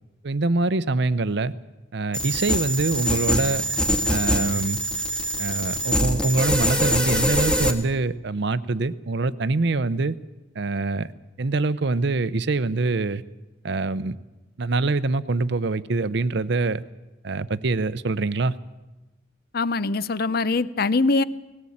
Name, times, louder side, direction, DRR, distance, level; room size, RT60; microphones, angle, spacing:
voice 1, 0.2-1.5 1.9-3.6 4.1-4.8 5.4-10.1 10.6-11.1 11.4-13.2 13.6-14.2 14.6-16.8 17.2-18.5, right 3 dB, 65° right, 17 dB, 0.7 m, -24 dB
sound 1, 2.1-7.7, equal, 5° left, 1.5 m, -24 dB
voice 2, 19.5-21.2, left 3 dB, 55° left, 16 dB, 0.7 m, -22 dB
19.0 x 17.5 x 8.6 m, 1.1 s
head